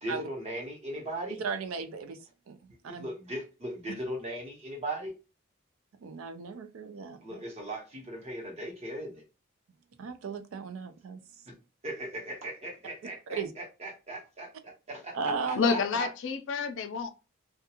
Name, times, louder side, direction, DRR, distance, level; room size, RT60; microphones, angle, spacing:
voice 1, 0.0-1.4 2.9-5.1 7.2-9.2 11.5-11.6 11.8-16.1, right 1 dB, 30° right, 0.8 m, -38 dB
voice 2, 1.4-2.2 2.5-3.1 3.9-4.0 6.0-7.4 10.0-11.2 13.3-13.5 15.1-15.8, right 5 dB, 85° right, 0.4 m, -36 dB
voice 3, 15.5-17.1, left 5 dB, 65° left, 0.4 m, -29 dB
2.3 x 2.2 x 2.9 m
head